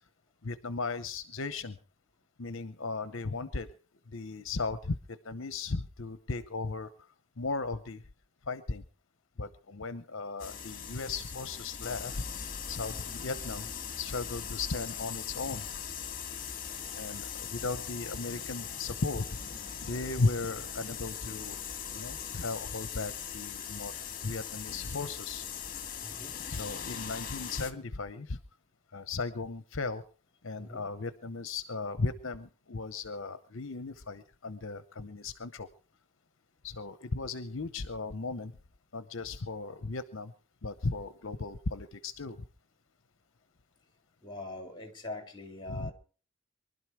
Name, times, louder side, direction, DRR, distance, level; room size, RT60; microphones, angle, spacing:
voice 1, 0.4-1.8 2.4-3.7 4.1-5.0 5.2-6.9 7.4-8.0 8.5-8.8 9.4-12.2 12.7-13.7 14.0-15.6 16.9-19.3 19.8-21.6 21.9-23.9 24.2-25.4 26.5-28.4 28.9-30.0 30.4-35.7 36.6-38.5 38.9-40.3 40.6-42.4 45.7-45.9, left 3 dB, 65° left, 12 dB, 0.8 m, -36 dB
sound 1, 10.4-27.7, left 7 dB, 40° left, 1.9 m, -40 dB
voice 2, 26.0-26.4 30.6-30.9 44.2-45.9, left 2 dB, 20° left, 5 dB, 3.4 m, -43 dB
24.0 x 12.0 x 4.7 m, 0.41 s
head